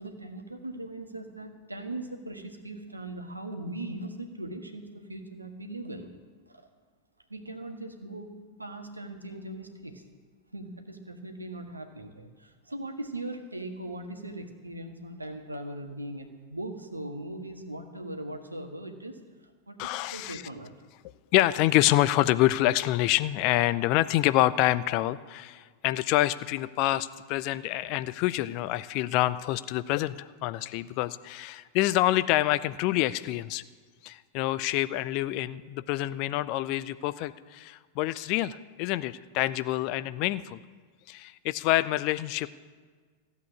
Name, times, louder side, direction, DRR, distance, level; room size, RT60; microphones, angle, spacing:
voice 1, 0.0-6.1 6.5-6.7 7.3-8.3 8.6-10.0 10.5-20.7, right 1 dB, 85° right, 5 dB, 1.5 m, -40 dB
voice 2, 19.8-20.4 21.3-33.6 34.0-40.6 41.1-42.5, left 16 dB, 45° left, 15 dB, 0.5 m, -27 dB
15.5 x 8.3 x 8.5 m, 1.6 s
figure-of-eight pair, 90°, 0 cm